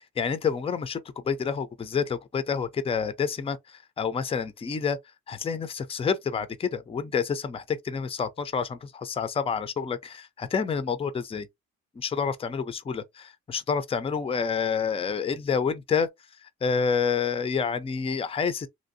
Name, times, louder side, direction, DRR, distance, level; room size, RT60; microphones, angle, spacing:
voice 1, 0.0-5.0 5.3-11.5 12.0-16.1 16.4-18.7, left 6 dB, 20° left, 0.4 m, -28 dB
3.1 x 2.6 x 2.6 m
cardioid pair, 90°, 30 cm